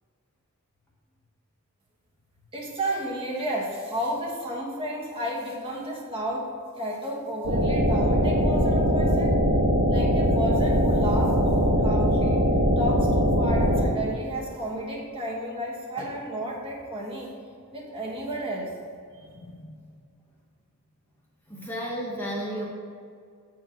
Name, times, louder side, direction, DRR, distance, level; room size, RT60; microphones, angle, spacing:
voice 1, 2.5-9.4 9.9-12.4 12.8-17.3 17.7-18.7, equal, 25° right, -4 dB, 1.4 m, -32 dB
sound 1, 7.4-13.8, equal, 65° right, 1.3 m, -21 dB
voice 2, 19.3-19.7 21.5-22.7, equal, 10° left, -5 dB, 1.0 m, -33 dB
7.7 x 4.7 x 5.7 m, 2.2 s
head